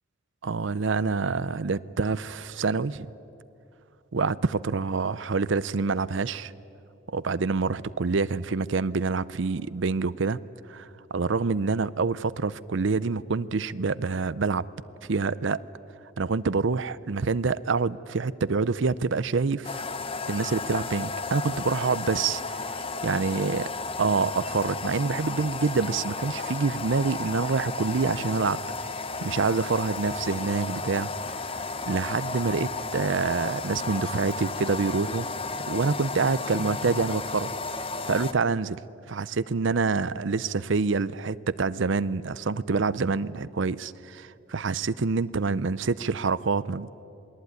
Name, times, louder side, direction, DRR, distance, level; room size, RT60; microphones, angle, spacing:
voice 1, 0.4-3.1 4.1-6.5 7.1-10.4 10.7-14.7 15.1-15.6 16.2-19.8 20.3-23.6 24.0-28.9 29.2-31.5 31.9-35.3 35.7-37.5 38.1-38.8 39.1-47.0, right 4 dB, 65° right, 17 dB, 0.6 m, -27 dB
sound 1, 19.6-38.3, left 3 dB, 25° left, 0.9 m, -33 dB
27.5 x 21.0 x 9.5 m, 2.8 s
head